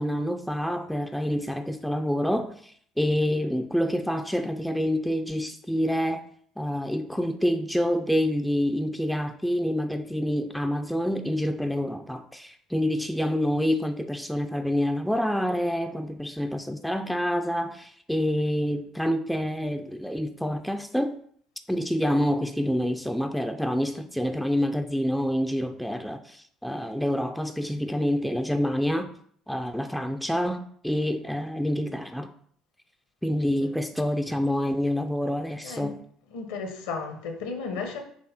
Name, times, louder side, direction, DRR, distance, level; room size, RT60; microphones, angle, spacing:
voice 1, 0.0-6.2 6.6-21.2 21.7-29.1 29.5-32.3 33.2-35.9, equal, ahead, 0.4 m, -27 dB
voice 2, 36.3-38.0, left 4 dB, 70° left, 1.1 m, -34 dB
6.3 x 3.3 x 4.5 m
figure-of-eight pair, 55°, 0 cm